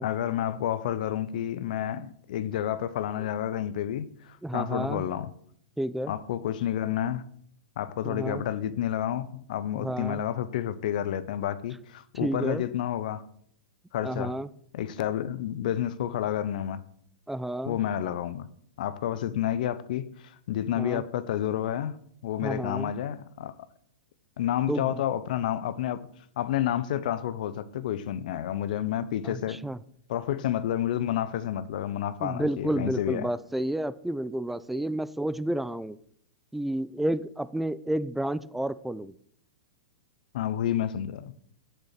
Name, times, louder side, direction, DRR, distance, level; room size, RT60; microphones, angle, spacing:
voice 1, 0.0-5.3 6.1-7.2 7.8-13.2 13.9-14.4 14.7-16.8 17.7-18.5 18.8-23.5 24.4-26.0 26.4-29.6 30.1-33.3 40.3-41.3, left 11 dB, 60° left, 0.7 m, -30 dB
voice 2, 4.4-5.0 5.8-6.1 8.1-8.4 9.8-10.2 12.2-12.6 14.0-14.5 17.3-17.8 20.8-21.0 22.4-22.9 24.7-25.0 29.2-29.8 32.2-36.0 36.5-39.1, right 1 dB, 5° right, 0.4 m, -31 dB
7.8 x 6.8 x 5.8 m
hypercardioid pair, 110°, 5 cm